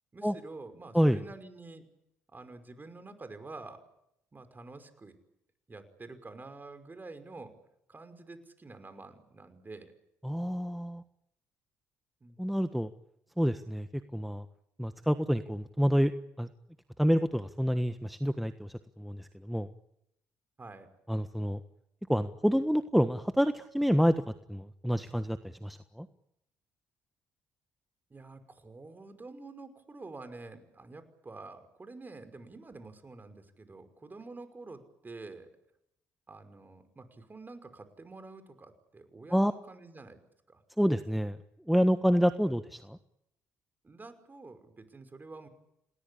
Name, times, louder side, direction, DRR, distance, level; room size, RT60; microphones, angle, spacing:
voice 1, 0.1-1.8 2.3-3.8 4.3-5.2 5.7-7.5 7.9-9.9 12.2-12.4 20.6-20.9 28.1-35.5 36.3-40.2 40.5-40.6 42.5-42.6 43.8-45.5, right 3 dB, 30° right, 10 dB, 5.6 m, -48 dB
voice 2, 10.2-11.0 12.4-12.9 13.4-13.9 14.1-14.4 14.8-16.1 16.4-16.5 17.0-19.7 21.1-21.6 22.1-24.2 24.5-26.1 39.3-39.5 40.8-41.4 41.7-43.0, equal, ahead, 9 dB, 1.4 m, -28 dB
28.0 x 19.0 x 8.6 m, 0.79 s
hypercardioid pair, 55°, 6 cm